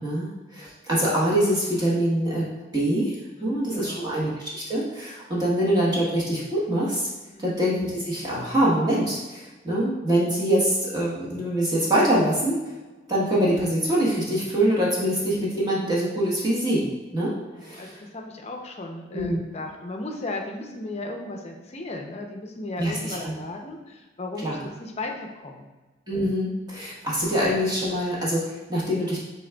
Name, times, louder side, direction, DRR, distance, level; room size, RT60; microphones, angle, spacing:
voice 1, 0.0-2.5 2.7-3.1 3.4-7.1 7.4-12.6 13.1-16.8 17.1-17.3 17.6-17.9 19.1-19.4 22.8-23.4 24.4-24.6 26.1-29.2, right 1 dB, 20° right, -7 dB, 1.1 m, -24 dB
voice 2, 3.4-4.2 7.3-7.6 17.5-25.7, left 2 dB, 35° left, 2 dB, 0.5 m, -36 dB
6.2 x 3.4 x 2.3 m, 1.2 s
head